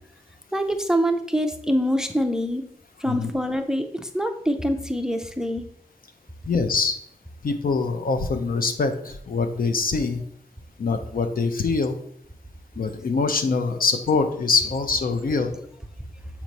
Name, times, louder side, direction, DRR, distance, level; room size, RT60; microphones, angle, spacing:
voice 1, 0.5-2.6 3.0-5.6, equal, 5° right, 7 dB, 0.4 m, -25 dB
voice 2, 6.4-7.0 7.4-10.2 10.8-12.0 12.8-15.5, left 4 dB, 60° left, 7 dB, 0.6 m, -24 dB
7.2 x 3.0 x 5.2 m, 0.67 s
wide cardioid pair, 130°, 16 cm